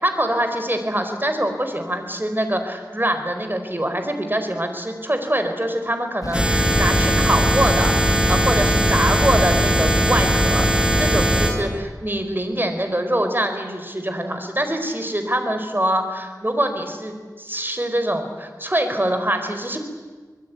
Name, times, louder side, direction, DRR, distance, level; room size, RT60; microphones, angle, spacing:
voice 1, 0.0-10.7 11.0-19.8, right 1 dB, 30° right, 6 dB, 4.2 m, -24 dB
sound 1, 6.2-11.5, left 2 dB, 60° left, 1.6 m, -30 dB
sound 2, 6.3-11.5, equal, 15° right, 5.9 m, -19 dB
24.5 x 21.0 x 9.4 m, 1.4 s
wide cardioid pair, 45°, 7 cm